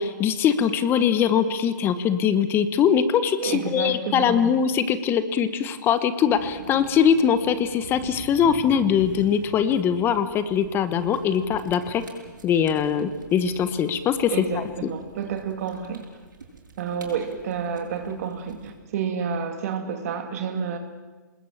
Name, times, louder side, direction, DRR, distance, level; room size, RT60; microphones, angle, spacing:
voice 1, 0.0-12.0 12.4-14.6, left 8 dB, 20° left, 12 dB, 1.2 m, -22 dB
voice 2, 3.4-4.5 14.3-16.1 16.8-20.8, right 6 dB, 50° right, 7 dB, 2.2 m, -30 dB
sound 1, 6.3-18.8, right 4 dB, 85° right, 6.6 m, -45 dB
26.0 x 20.5 x 7.4 m, 1.3 s
hypercardioid pair, 140°, 10 cm